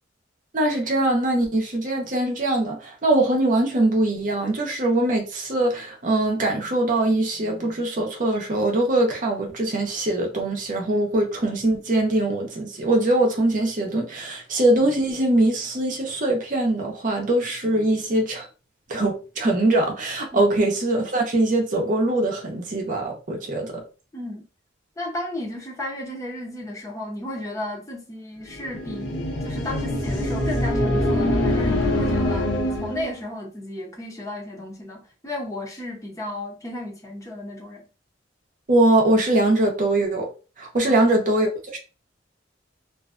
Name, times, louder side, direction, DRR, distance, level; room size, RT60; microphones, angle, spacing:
voice 1, 0.5-18.5 18.9-23.7 38.7-40.3 40.6-41.8, right 1 dB, 45° right, 0.6 m, -22 dB
voice 2, 24.1-24.4 25.0-37.8 40.8-41.1, left 1 dB, 20° left, 0.7 m, -34 dB
sound 1, 28.5-33.2, left 1 dB, 85° left, 0.9 m, -24 dB
2.5 x 2.2 x 2.4 m
head